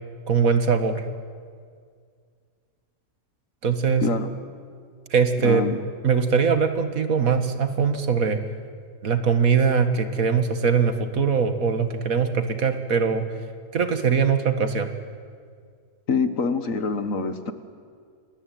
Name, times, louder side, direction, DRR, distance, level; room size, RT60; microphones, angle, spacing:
voice 1, 0.3-1.0 3.6-4.0 5.1-5.6 6.0-8.4 9.0-13.2 13.7-14.9, right 6 dB, 65° right, 9 dB, 2.1 m, -21 dB
voice 2, 5.4-5.8 16.1-17.5, left 4 dB, 60° left, 10 dB, 1.9 m, -25 dB
28.5 x 21.0 x 9.2 m, 2.1 s
omnidirectional pair, 1.6 m